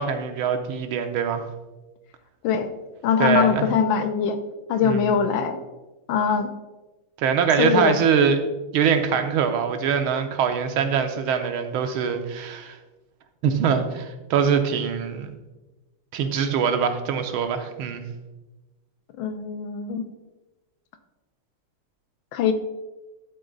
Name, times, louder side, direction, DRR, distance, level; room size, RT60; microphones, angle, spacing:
voice 1, 0.0-1.5 3.2-3.7 4.8-5.1 7.2-8.4 8.7-12.8 13.4-15.3 16.1-18.0, right 7 dB, 75° right, 7 dB, 1.5 m, -23 dB
voice 2, 3.0-4.4 4.7-5.6 6.1-6.5 7.6-8.0 19.2-20.0 22.3-22.5, left 7 dB, 75° left, 8 dB, 1.3 m, -22 dB
11.5 x 4.0 x 3.8 m, 1.1 s
omnidirectional pair, 2.4 m